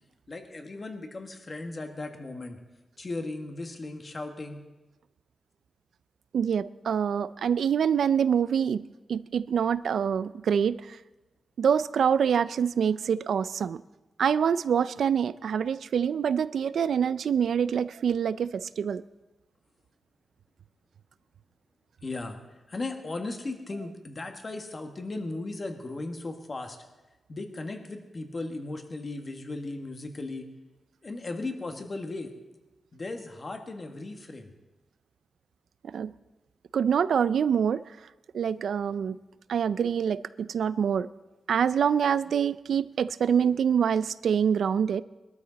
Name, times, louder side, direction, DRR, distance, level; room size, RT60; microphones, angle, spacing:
voice 1, 0.3-2.6 3.0-4.6 22.0-22.4 22.7-26.8 27.3-30.5 31.0-32.3 32.9-34.5, left 2 dB, 35° left, 4 dB, 1.7 m, -36 dB
voice 2, 6.3-11.0 11.6-13.8 14.2-19.0 35.8-36.1 36.7-37.8 38.3-39.2 39.5-41.1 41.5-45.0, right 7 dB, 85° right, 16 dB, 0.4 m, -25 dB
21.5 x 13.0 x 4.1 m, 1.1 s
wide cardioid pair, 125°, 0 cm